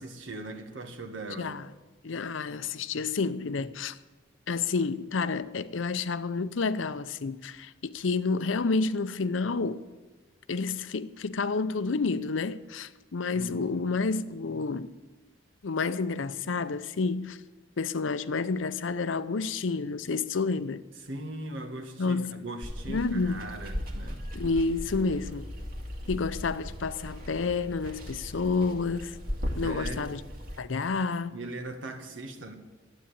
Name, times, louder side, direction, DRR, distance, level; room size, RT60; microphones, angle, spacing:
voice 1, 0.0-1.5 13.3-13.9 21.0-24.2 29.5-30.1 31.3-32.6, right 2 dB, 80° right, 1.8 m, -40 dB
voice 2, 2.0-4.0 4.5-9.8 10.5-14.9 15.6-17.4 17.8-20.8 22.0-22.3 22.9-23.4 24.3-25.5 26.1-29.2 29.5-30.2 30.6-31.4, left 4 dB, 80° left, 0.6 m, -29 dB
Water, 22.6-30.6, equal, 50° right, 2.2 m, -37 dB
12.5 x 8.8 x 8.7 m
head